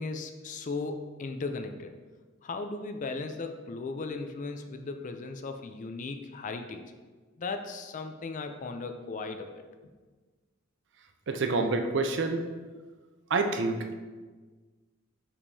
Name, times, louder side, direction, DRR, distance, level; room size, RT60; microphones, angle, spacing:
voice 1, 0.0-1.9 2.4-6.8 7.4-9.6, left 3 dB, 40° left, 6 dB, 0.4 m, -36 dB
voice 2, 11.3-12.5 13.3-13.9, right 3 dB, 60° right, 6 dB, 0.5 m, -27 dB
6.4 x 5.9 x 2.7 m, 1.4 s
head